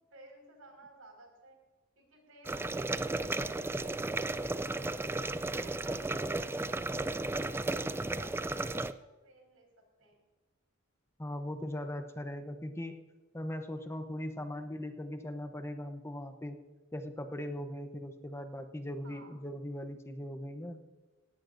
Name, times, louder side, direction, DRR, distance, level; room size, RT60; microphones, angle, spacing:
voice 1, 0.1-1.6 2.0-4.8 5.2-9.7 10.0-10.2 14.3-14.5 19.0-19.4, right 2 dB, 90° right, 2 dB, 5.2 m, -57 dB
sound 1, 2.5-8.9, right 2 dB, 10° right, 0.3 m, -34 dB
voice 2, 11.2-12.9 13.3-16.6 16.9-20.8, left 1 dB, 10° left, 7 dB, 0.8 m, -39 dB
18.0 x 17.0 x 2.6 m, 1.3 s
head